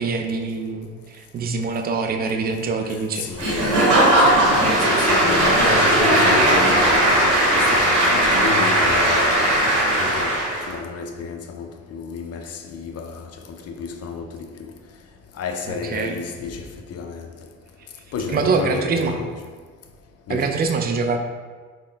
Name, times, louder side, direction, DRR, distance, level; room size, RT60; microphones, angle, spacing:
voice 1, 0.0-3.3 15.7-16.2 18.3-19.2 20.3-21.2, right 4 dB, 30° right, 0.4 m, -24 dB
voice 2, 3.2-9.4 9.6-10.3 10.7-14.7 15.4-17.3 18.1-19.3 20.3-20.5, left 5 dB, 55° left, 0.5 m, -31 dB
Applause / Crowd, 3.4-10.7, right 1 dB, 85° right, 1.2 m, -17 dB
3.8 x 2.1 x 3.9 m
cardioid pair, 90°, 30 cm